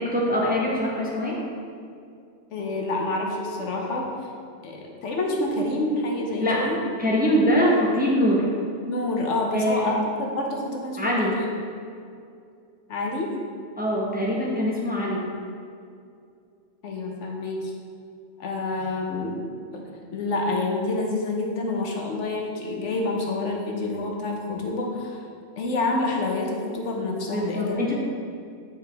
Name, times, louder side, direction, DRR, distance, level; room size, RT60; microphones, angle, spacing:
voice 1, 0.0-1.4 6.4-6.7 7.0-8.5 9.5-10.0 11.0-11.4 13.8-15.3 27.3-27.9, equal, 10° right, -5 dB, 0.8 m, -23 dB
voice 2, 2.5-4.2 4.6-6.8 8.8-11.5 12.9-13.4 16.8-17.7 18.4-19.5 19.7-25.2 25.6-27.8, left 2 dB, 75° left, 1 dB, 1.1 m, -28 dB
7.8 x 4.8 x 3.4 m, 2.4 s
omnidirectional pair, 1.2 m